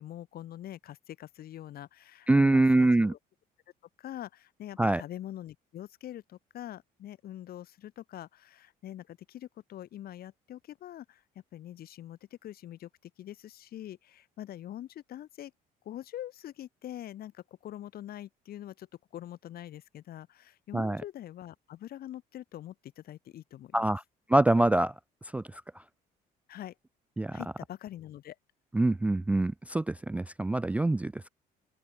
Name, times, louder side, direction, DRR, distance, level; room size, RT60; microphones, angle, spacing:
voice 1, 0.0-3.2 4.0-11.2 11.5-15.5 15.8-18.9 19.1-23.9 26.5-26.7 27.3-28.4, left 12 dB, 65° left, 3.8 m, -44 dB
voice 2, 2.3-3.1 4.8-5.0 20.7-21.0 23.7-24.0 24.3-24.9 25.3-25.6 27.2-27.4 28.7-31.3, right 2 dB, 10° right, 0.3 m, -25 dB
open air
cardioid pair, 110°, 17 cm